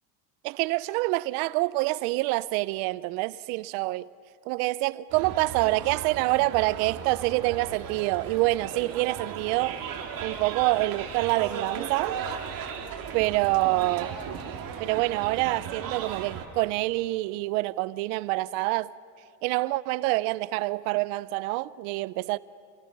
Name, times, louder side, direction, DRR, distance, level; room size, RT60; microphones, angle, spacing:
voice 1, 0.4-4.1 4.5-9.8 10.2-12.2 13.1-14.1 14.8-18.9 19.4-22.4, right 20 dB, 80° right, 0.6 m, -26 dB
sound 1, 5.1-16.5, right 7 dB, 45° right, 2.5 m, -36 dB
28.5 x 18.5 x 6.0 m
cardioid pair, 125°, 45 cm